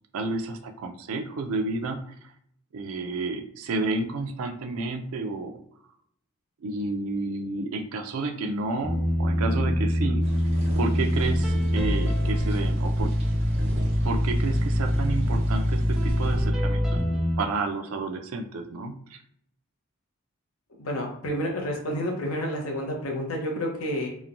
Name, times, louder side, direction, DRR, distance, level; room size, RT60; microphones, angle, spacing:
voice 1, 0.1-2.1 2.7-5.6 6.6-10.3 10.8-13.1 14.0-16.8 17.4-19.2, right 3 dB, 75° right, 5 dB, 0.4 m, -31 dB
sound 1, 8.8-17.4, equal, 5° right, 0.4 m, -24 dB
sound 2, 10.2-16.5, equal, 30° right, 0.9 m, -39 dB
voice 2, 20.8-24.1, equal, 75° left, 1 dB, 0.8 m, -29 dB
3.0 x 2.1 x 2.5 m, 0.66 s
head